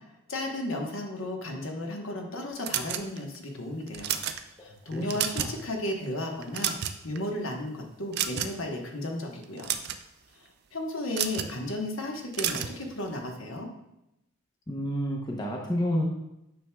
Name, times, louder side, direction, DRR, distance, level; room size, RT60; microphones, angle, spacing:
voice 1, 0.3-4.2 4.6-6.7 7.0-9.7 10.7-13.7, left 1 dB, 65° left, 1 dB, 1.1 m, -34 dB
sound 1, 2.6-3.4 3.9-4.4 4.9-5.6 5.9-6.1 6.4-7.2 8.1-8.7 9.4-10.0 11.1-11.5 12.3-12.8, right 9 dB, 50° right, 0.4 m, -30 dB
voice 2, 4.6-5.0 5.4-5.5 14.7-16.0, equal, 20° left, -1 dB, 0.7 m, -30 dB
9.0 x 5.9 x 2.3 m, 0.86 s
head